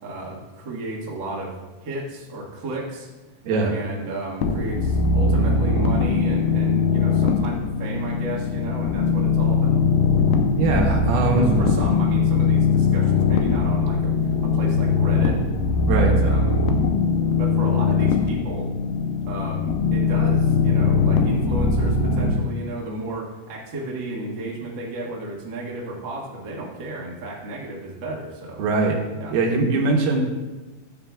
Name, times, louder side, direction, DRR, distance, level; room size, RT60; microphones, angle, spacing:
voice 1, 0.0-1.5 1.8-3.1 3.6-9.8 11.4-15.4 15.9-16.6 17.4-18.7 19.3-28.6 29.2-29.3, right 2 dB, 50° right, -4 dB, 1.4 m, -33 dB
sound 1, 4.4-22.3, left 4 dB, 80° left, 2.3 m, -21 dB
voice 2, 10.6-11.5 15.8-16.1 28.6-29.0 29.3-30.2, right 3 dB, 75° right, 1 dB, 2.9 m, -21 dB
14.5 x 9.0 x 2.4 m, 1.2 s
omnidirectional pair, 4.8 m